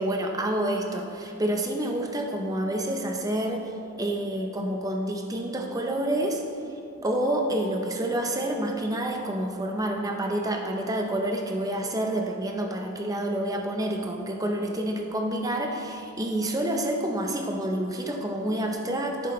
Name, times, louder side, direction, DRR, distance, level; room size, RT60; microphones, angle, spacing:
voice 1, 0.0-3.7 4.0-6.4 7.0-19.3, right 1 dB, 15° right, 2 dB, 0.8 m, -28 dB
11.0 x 9.7 x 3.2 m, 2.8 s
head